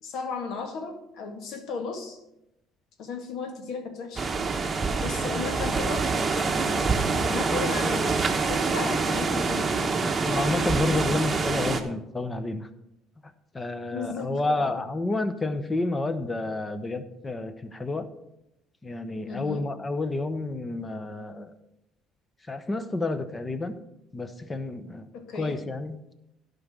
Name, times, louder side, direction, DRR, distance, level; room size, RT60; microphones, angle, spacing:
voice 1, 0.0-2.2 3.0-4.3 5.0-6.1 6.4-9.8 13.9-14.8 19.3-19.7 25.1-25.6, left 4 dB, 65° left, 5 dB, 1.8 m, -35 dB
sound 1, 4.2-11.8, right 4 dB, 25° right, 1.1 m, -26 dB
voice 2, 10.2-12.7 13.5-18.1 18.8-21.5 22.5-23.8 24.1-25.1 25.3-26.0, left 2 dB, 20° left, 11 dB, 0.9 m, -30 dB
11.5 x 5.4 x 6.1 m, 0.87 s
cardioid pair, 105°, 0 cm